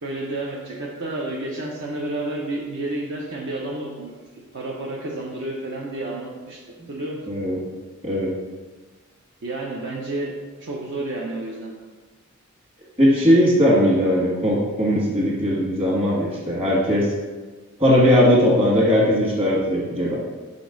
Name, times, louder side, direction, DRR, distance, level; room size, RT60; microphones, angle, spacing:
voice 1, 0.0-4.1 4.5-7.2 9.4-10.3 10.6-11.7, right 2 dB, 55° right, -2 dB, 0.7 m, -30 dB
voice 2, 7.3-7.6 8.0-8.3 13.0-17.1 17.8-20.2, equal, 25° right, -4 dB, 1.6 m, -19 dB
5.2 x 5.2 x 3.8 m, 1.3 s
head